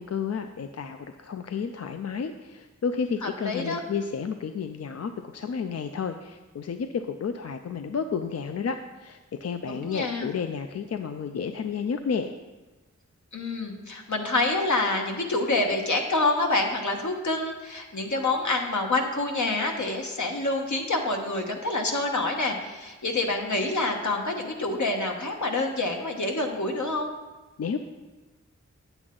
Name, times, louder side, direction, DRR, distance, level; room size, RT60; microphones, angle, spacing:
voice 1, 0.0-12.3 27.6-27.8, left 6 dB, 60° left, 7 dB, 0.4 m, -31 dB
voice 2, 3.2-3.8 9.6-10.3 13.3-27.1, left 2 dB, 75° left, 2 dB, 1.2 m, -27 dB
8.6 x 8.0 x 3.8 m, 1.2 s
wide cardioid pair, 80°, 29 cm